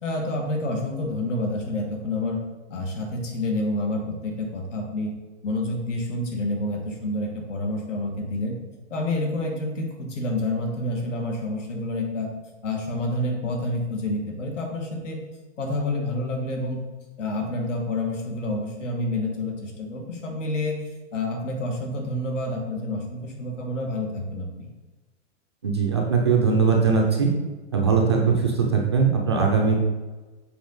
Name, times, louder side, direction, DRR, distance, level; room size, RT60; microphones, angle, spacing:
voice 1, 0.0-2.4 2.7-5.1 5.4-8.6 8.9-12.3 12.6-15.2 15.6-16.8 17.2-20.8 21.1-24.7, left 1 dB, 85° left, 1 dB, 1.8 m, -28 dB
voice 2, 25.6-27.3 27.7-29.7, right 5 dB, 25° right, 0 dB, 0.4 m, -20 dB
7.0 x 4.3 x 3.9 m, 1.2 s
hypercardioid pair, 170°, 36 cm